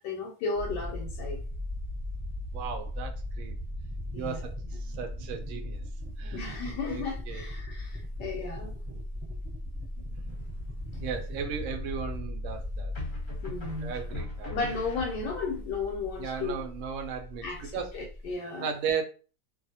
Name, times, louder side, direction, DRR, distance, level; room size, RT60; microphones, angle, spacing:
voice 1, 0.0-1.4 4.1-4.4 6.3-8.7 10.9-11.0 13.4-13.9 14.5-16.6 17.4-18.7, left 4 dB, 85° left, 1.2 m, -34 dB
sound 1, 0.5-18.3, left 1 dB, 25° right, 1.0 m, -38 dB
voice 2, 2.5-3.6 4.2-5.8 6.2-6.6 6.8-7.4 11.0-12.9 13.8-14.5 16.2-17.4 17.7-17.9 18.6-19.0, right 6 dB, 75° right, 0.7 m, -35 dB
sound 2, 10.3-10.9 12.9-15.6, left 3 dB, 40° left, 0.8 m, -41 dB
2.7 x 2.4 x 2.7 m
omnidirectional pair, 1.8 m